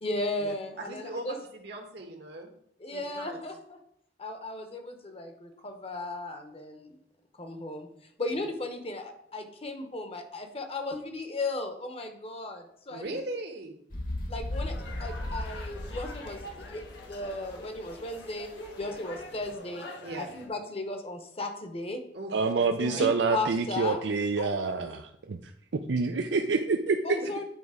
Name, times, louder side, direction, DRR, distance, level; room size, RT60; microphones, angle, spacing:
voice 1, 0.0-1.4 2.8-3.8 4.2-7.0 7.4-7.9 8.2-13.2 14.3-16.8 17.1-18.5 18.8-19.9 20.2-22.0 22.8-24.0 24.4-25.0 27.0-27.4, left 2 dB, 35° left, 6 dB, 1.0 m, -36 dB
voice 2, 0.9-2.5 2.9-3.4 12.9-13.8 18.8-19.0 20.0-20.3 22.1-23.1 27.2-27.3, right 2 dB, 65° right, 3 dB, 1.3 m, -40 dB
sound 1, 13.9-19.5, left 1 dB, 55° left, 1.3 m, -37 dB
sound 2, 14.5-20.5, left 1 dB, 85° left, 1.5 m, -45 dB
voice 3, 22.3-25.4 25.7-27.0, right 4 dB, 80° right, 5 dB, 0.5 m, -27 dB
9.1 x 4.0 x 4.9 m, 0.71 s
head